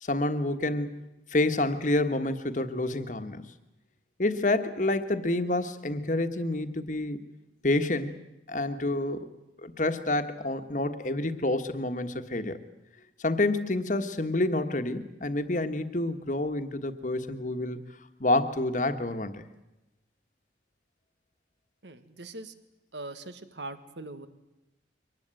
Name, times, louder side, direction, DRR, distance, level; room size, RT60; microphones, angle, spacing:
voice 1, 0.0-1.0 1.3-3.5 4.2-7.2 7.6-8.1 8.5-9.3 9.6-12.6 13.2-17.8 18.2-19.4, left 2 dB, 45° left, 9 dB, 1.5 m, -28 dB
voice 2, 21.8-22.6 22.9-24.3, right 2 dB, 75° right, 11 dB, 1.8 m, -41 dB
24.0 x 19.0 x 9.0 m, 0.96 s
head